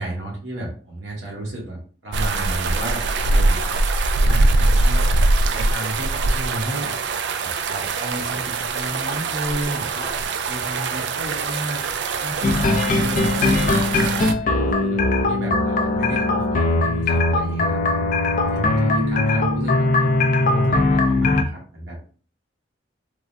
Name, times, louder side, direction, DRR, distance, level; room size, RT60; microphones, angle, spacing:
voice 1, 0.0-3.7 4.2-6.9 7.4-11.8 12.2-17.8 18.2-22.1, right 1 dB, 80° right, -2 dB, 1.0 m, -32 dB
sound 1, 2.1-14.3, right 2 dB, 65° right, 0.3 m, -22 dB
sound 2, 12.4-21.4, left 2 dB, 45° left, 0.3 m, -20 dB
3.4 x 2.1 x 2.5 m, 0.40 s
head